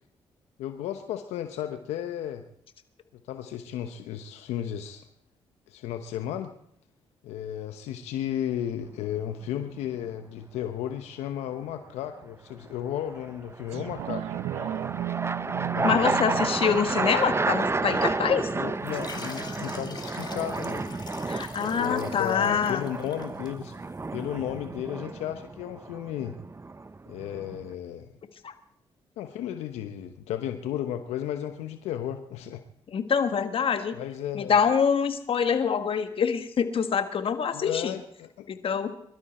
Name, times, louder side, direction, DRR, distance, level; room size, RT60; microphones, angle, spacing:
voice 1, 0.6-2.4 3.3-5.0 5.7-6.5 7.2-14.2 15.7-16.2 18.6-20.9 21.7-23.7 24.1-26.4 27.1-28.1 29.2-32.6 33.9-34.5 37.5-38.5, left 10 dB, 90° left, 8 dB, 1.0 m, -34 dB
sound 1, 8.8-9.3 13.1-27.7, right 3 dB, 25° right, 0.7 m, -31 dB
sound 2, 13.7-18.7 19.2-19.3, right 12 dB, 85° right, 0.8 m, -35 dB
voice 2, 15.8-18.5 21.3-22.8 28.4-28.5 32.9-34.0 34.3-38.0 38.5-38.9, left 7 dB, 60° left, 9 dB, 1.6 m, -25 dB
sound 3, 18.8-24.0, left 4 dB, 40° left, 2.3 m, -44 dB
22.0 x 12.5 x 4.3 m, 0.68 s
supercardioid pair, 60°, 11 cm